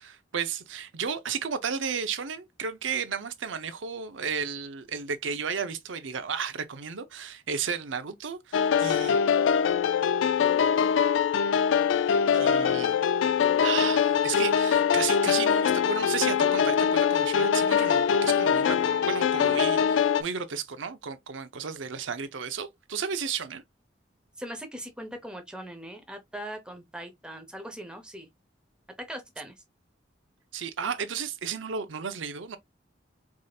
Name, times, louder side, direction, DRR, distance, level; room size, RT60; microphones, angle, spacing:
voice 1, 0.0-9.2 12.3-13.0 13.6-23.6 30.5-32.6, right 6 dB, 85° right, 0.7 m, -33 dB
sound 1, 8.5-20.2, left 7 dB, 90° left, 0.3 m, -23 dB
voice 2, 24.4-28.3 29.0-29.5, equal, 5° right, 0.8 m, -40 dB
4.8 x 2.7 x 2.3 m
head